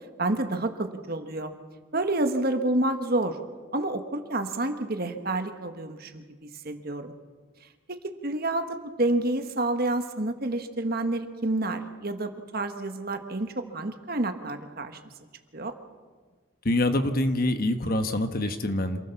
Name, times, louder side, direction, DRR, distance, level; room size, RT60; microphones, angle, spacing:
voice 1, 0.2-1.5 1.9-3.4 3.7-7.1 7.9-15.0 15.5-15.8, right 2 dB, 45° right, 7 dB, 1.4 m, -29 dB
voice 2, 16.6-19.0, left 1 dB, 45° left, 8 dB, 1.2 m, -25 dB
26.5 x 15.5 x 7.1 m, 1.5 s
head